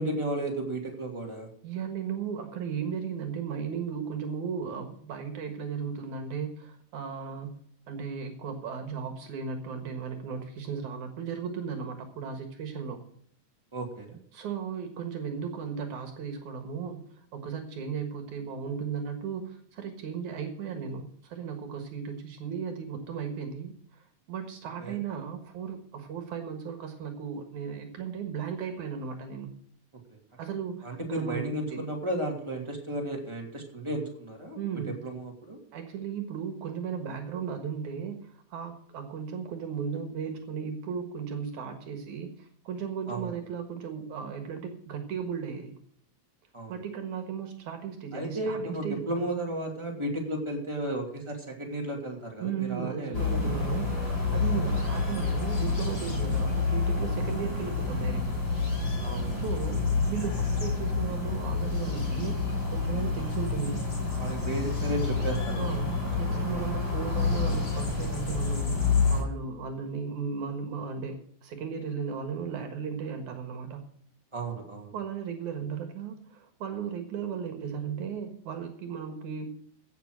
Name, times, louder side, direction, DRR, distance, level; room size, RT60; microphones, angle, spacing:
voice 1, 0.0-1.5 13.7-14.2 24.8-25.0 30.1-30.2 30.8-35.6 43.1-43.4 46.5-46.8 48.1-53.5 54.3-54.4 59.0-59.4 64.2-65.8 66.2-66.5 74.3-74.9, right 1 dB, 10° right, 0 dB, 2.5 m, -34 dB
voice 2, 1.6-7.6 7.9-13.0 14.3-17.0 17.3-29.5 30.4-31.8 34.6-35.0 35.7-45.7 46.7-49.3 52.4-58.4 59.3-62.4 62.7-63.9 65.6-73.8 74.9-79.5, right 7 dB, 70° right, 6 dB, 2.8 m, -36 dB
sound 1, 53.1-69.2, left 4 dB, 30° left, 5.2 m, -28 dB
16.0 x 7.4 x 6.3 m, 0.63 s
omnidirectional pair, 3.6 m